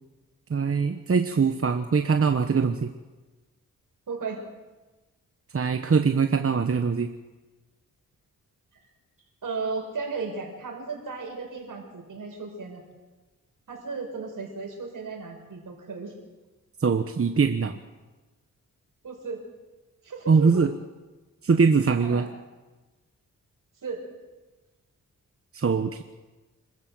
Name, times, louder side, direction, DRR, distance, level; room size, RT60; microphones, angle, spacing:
voice 1, 0.5-2.9 5.5-7.1 16.8-17.8 20.3-20.7 21.4-22.2 25.5-26.0, right 5 dB, 40° right, 7 dB, 1.2 m, -22 dB
voice 2, 4.1-4.4 9.4-12.8 13.7-16.1 19.0-19.4 20.0-20.6 22.0-22.3 23.8-24.0, right 4 dB, 70° right, 1 dB, 6.1 m, -35 dB
26.5 x 14.0 x 7.8 m, 1.2 s
cardioid pair, 70°, 33 cm